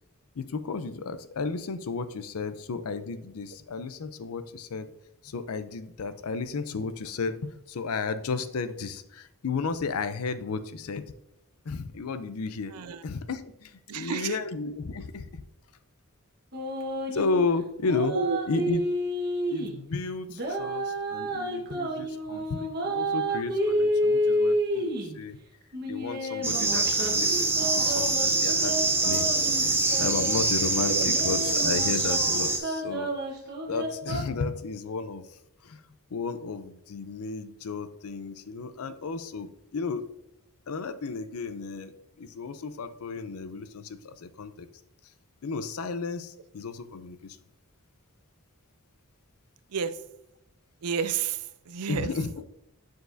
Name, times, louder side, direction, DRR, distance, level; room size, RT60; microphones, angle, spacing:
voice 1, 0.4-4.9 5.2-11.1 11.7-12.7 13.0-15.4 17.1-18.1 18.5-18.8 19.5-25.4 25.9-29.3 29.6-29.7 30.0-33.1 33.7-35.3 35.6-35.8 36.1-40.1 40.7-44.7 45.4-47.4 51.9-52.4, left 4 dB, 70° left, 12 dB, 0.5 m, -33 dB
voice 2, 12.7-13.0 13.9-14.4 18.0-18.4 30.9-31.1 49.7-50.0 50.8-52.1, right 6 dB, 85° right, 12 dB, 0.5 m, -31 dB
sound 1, 16.5-17.4 17.8-19.8 20.3-25.2 25.7-30.5 31.0-34.2, equal, 45° right, 1.2 m, -30 dB
sound 2, 26.4-32.6, right 3 dB, 10° right, 0.7 m, -25 dB
7.0 x 6.5 x 2.6 m, 0.81 s
head